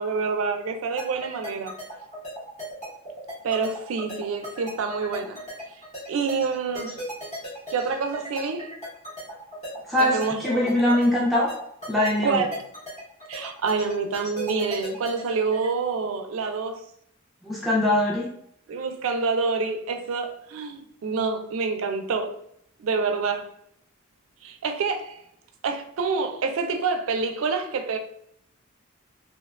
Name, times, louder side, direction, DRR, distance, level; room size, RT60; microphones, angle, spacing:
voice 1, 0.0-1.7 3.4-5.4 6.1-7.0 7.7-8.7 10.0-10.8 12.2-12.6 13.3-16.8 18.7-22.4 22.8-23.5 24.4-25.2 25.6-28.0, right 4 dB, 75° right, 0.4 m, -27 dB
sound 1, 1.0-15.7, equal, 35° left, 0.9 m, -37 dB
voice 2, 9.9-11.5 11.9-12.5 17.4-18.3, left 1 dB, ahead, 0.3 m, -22 dB
2.8 x 2.1 x 2.3 m
head